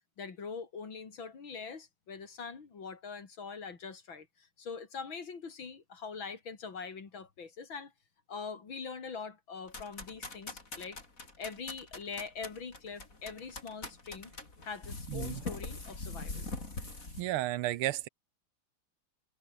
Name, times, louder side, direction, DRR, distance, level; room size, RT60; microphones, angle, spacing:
voice 1, 0.2-7.9 8.3-11.0 11.4-14.3 14.6-16.5, left 5 dB, 60° left, 3.6 m, -43 dB
sound 1, 9.7-17.2, left 3 dB, 35° left, 4.7 m, -43 dB
voice 2, 15.1-15.4 17.2-18.1, right 15 dB, 80° right, 1.6 m, -33 dB
omnidirectional pair, 2.4 m